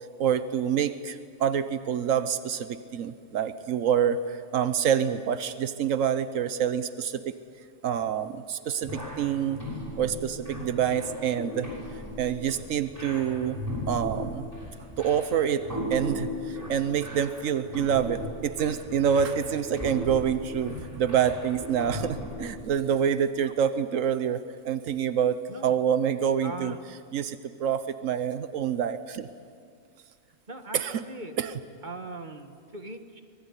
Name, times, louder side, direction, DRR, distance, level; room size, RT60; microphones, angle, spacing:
voice 1, 0.2-7.4 7.8-9.6 10.0-13.6 13.9-14.5 15.0-26.7 27.1-29.3 30.7-31.0 31.4-31.5, right 8 dB, 90° right, 12 dB, 1.3 m, -27 dB
sound 1, 8.8-22.6, left 1 dB, 15° right, 7.0 m, -37 dB
voice 2, 26.4-26.8 30.5-31.4 31.8-33.2, right 2 dB, 40° right, 7 dB, 1.7 m, -40 dB
25.0 x 21.0 x 9.7 m, 2.2 s
omnidirectional pair, 1.3 m